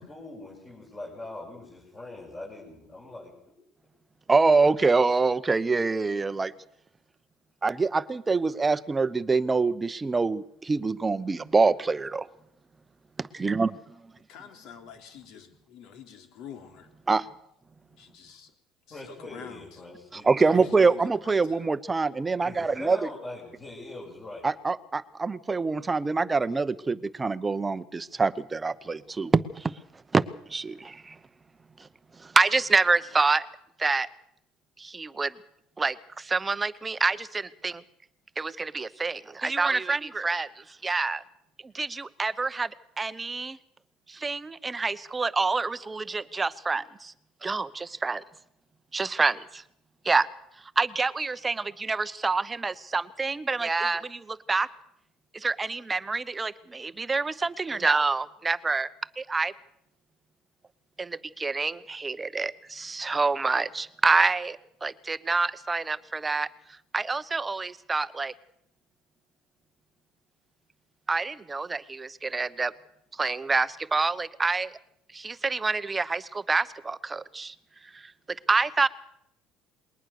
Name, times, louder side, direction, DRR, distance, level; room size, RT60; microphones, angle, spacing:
voice 1, 0.0-3.5 18.9-20.7 22.4-24.5, left 2 dB, 25° left, -4 dB, 6.8 m, -42 dB
voice 2, 4.3-6.5 7.6-12.3 13.2-14.0 17.1-17.3 20.1-23.1 24.4-29.7 30.1-31.2 32.2-33.5 33.8-34.1 34.8-35.3 35.8-37.8 38.4-41.2 41.7-42.7 43.0-43.6 44.1-47.1 47.4-48.2 48.9-49.6 50.0-50.3 50.8-54.7 55.3-58.9 59.2-59.5 61.0-66.5 66.9-68.3 71.1-72.7 73.2-74.7 75.1-77.5 77.9-78.0 78.5-78.9, right 4 dB, 15° right, 14 dB, 0.9 m, -26 dB
voice 3, 14.3-16.9 17.9-18.5 18.9-19.9 20.4-21.7, left 7 dB, 65° left, 6 dB, 3.4 m, -47 dB
21.0 x 19.0 x 6.6 m, 0.73 s
cardioid pair, 120°, 0 cm